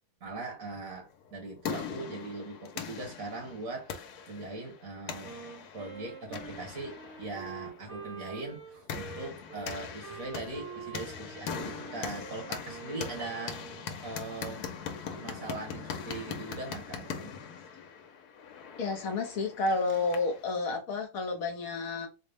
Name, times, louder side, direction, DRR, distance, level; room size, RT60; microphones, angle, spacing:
voice 1, 0.2-5.3 5.7-13.6 14.0-14.6 15.1-17.4, right 2 dB, 60° right, 1.6 m, -40 dB
sound 1, 1.2-20.4, left 6 dB, 80° left, 1.2 m, -41 dB
Wind instrument woodwind instrument, 5.2-13.9, right 6 dB, 90° right, 1.7 m, -46 dB
voice 2, 18.8-22.1, left 3 dB, 65° left, 1.2 m, -30 dB
4.0 x 2.1 x 3.3 m
omnidirectional pair, 1.7 m